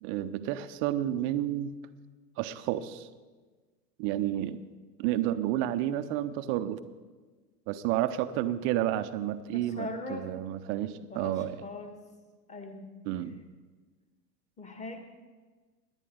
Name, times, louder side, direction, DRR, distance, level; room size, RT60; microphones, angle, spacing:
voice 1, 0.0-1.7 2.4-3.1 4.0-4.6 5.0-6.8 7.7-11.6 13.1-13.4, right 12 dB, 25° right, 12 dB, 0.6 m, -30 dB
voice 2, 9.5-10.3 11.1-12.0 12.5-12.9 14.6-15.0, left 2 dB, 15° left, 5 dB, 1.8 m, -40 dB
18.5 x 11.0 x 4.7 m, 1.4 s
figure-of-eight pair, 90°, 48 cm